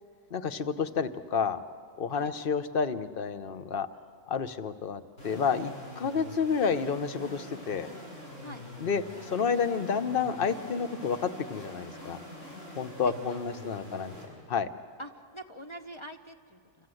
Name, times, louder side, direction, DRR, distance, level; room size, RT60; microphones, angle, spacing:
voice 1, 0.3-1.6 2.0-3.9 4.3-7.9 8.8-12.2 12.8-14.1 14.5-14.7, left 6 dB, 45° left, 11 dB, 1.1 m, -30 dB
sound 1, 5.2-14.3, left 1 dB, 70° left, 8.6 m, -45 dB
voice 2, 13.0-13.6 15.0-16.9, equal, 25° left, 4 dB, 0.9 m, -45 dB
28.5 x 25.5 x 7.9 m, 2.1 s
omnidirectional pair, 1.4 m